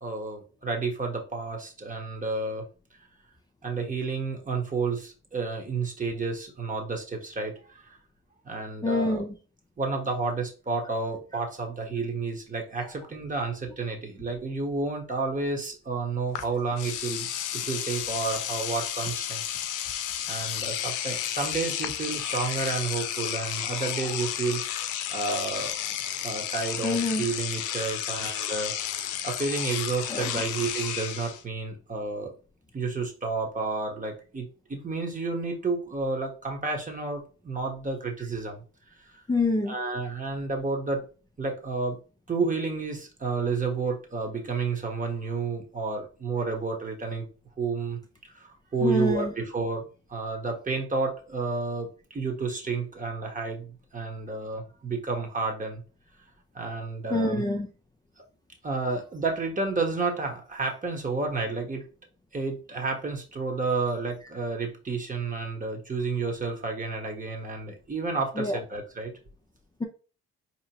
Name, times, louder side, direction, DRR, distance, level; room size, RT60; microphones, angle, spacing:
voice 1, 0.0-2.6 3.6-8.0 8.4-9.2 9.8-19.6 20.3-24.6 25.1-25.7 26.2-32.3 32.7-38.6 39.0-39.2 39.7-41.0 41.4-42.0 42.3-47.3 47.6-55.8 56.5-57.4 58.6-61.8 62.3-69.1, right 4 dB, 25° right, 2 dB, 1.2 m, -31 dB
voice 2, 8.8-9.3 26.8-27.3 30.1-30.3 39.3-39.7 48.8-49.3 57.1-57.7 68.4-68.6, left 2 dB, 15° left, 1 dB, 0.5 m, -26 dB
Engine / Domestic sounds home sounds, 16.3-16.5 16.8-31.4, left 10 dB, 90° left, 0.5 m, -32 dB
4.3 x 2.9 x 2.9 m, 0.36 s
cardioid pair, 90°, 30 cm